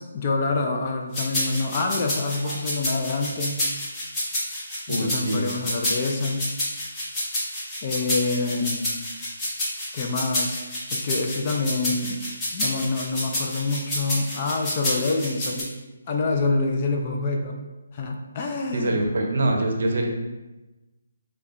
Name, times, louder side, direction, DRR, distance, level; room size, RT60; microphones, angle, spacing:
voice 1, 0.0-3.6 4.9-6.4 7.8-8.9 9.9-10.6 10.9-12.2 12.5-15.7 16.1-17.5 17.9-19.0, left 3 dB, 30° left, 2 dB, 0.4 m, -26 dB
sound 1, 1.1-15.6, left 1 dB, 15° left, 0.8 m, -29 dB
voice 2, 4.9-5.5 18.7-20.1, right 2 dB, 60° right, 2 dB, 0.6 m, -24 dB
4.6 x 2.2 x 2.5 m, 1.1 s
hypercardioid pair, 160°, 0 cm